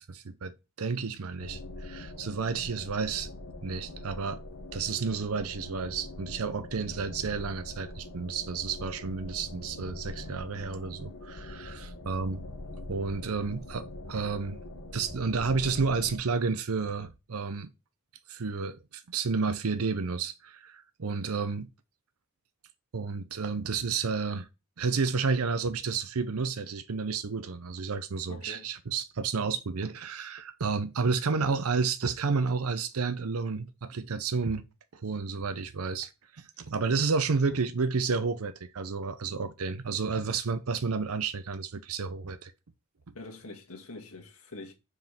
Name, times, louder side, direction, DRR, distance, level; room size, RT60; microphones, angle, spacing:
voice 1, 0.0-3.3 3.6-4.4 4.7-12.4 12.9-14.6 14.9-17.7 18.3-21.7 22.9-24.5 24.8-34.7 34.9-42.5 43.1-43.2, right 4 dB, 80° right, 0.7 m, -31 dB
sound 1, 1.4-16.2, left 1 dB, 70° left, 1.2 m, -43 dB
voice 2, 28.3-28.7 43.1-44.7, left 2 dB, 85° left, 1.9 m, -44 dB
6.2 x 4.8 x 4.3 m
head